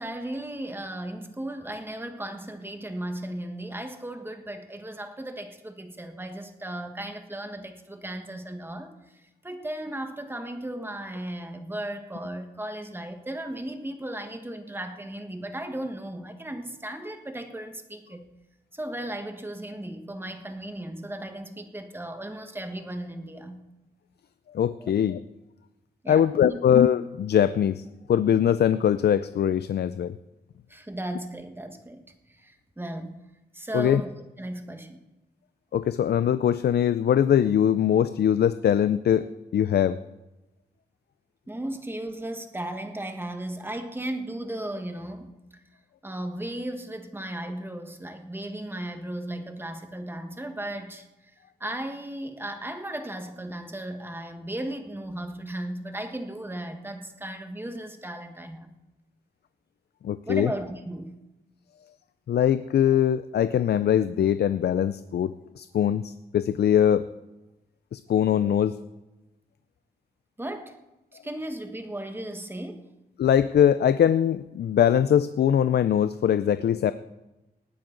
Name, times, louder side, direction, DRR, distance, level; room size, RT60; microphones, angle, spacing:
voice 1, 0.0-18.3 18.7-23.6 24.8-24.9 26.0-26.6 30.7-32.0 32.3-33.2 33.5-34.1 34.4-35.0 41.5-45.4 46.0-51.3 51.6-58.7 60.3-61.2 70.4-70.8 71.1-72.9, right 1 dB, 15° right, 6 dB, 1.4 m, -36 dB
voice 2, 24.5-25.2 26.1-27.8 28.1-30.2 33.7-34.0 35.7-40.0 60.0-60.5 62.3-67.0 67.9-68.8 73.2-76.9, left 9 dB, 70° left, 13 dB, 0.5 m, -22 dB
19.0 x 9.4 x 3.9 m, 1.0 s
wide cardioid pair, 100°, 17 cm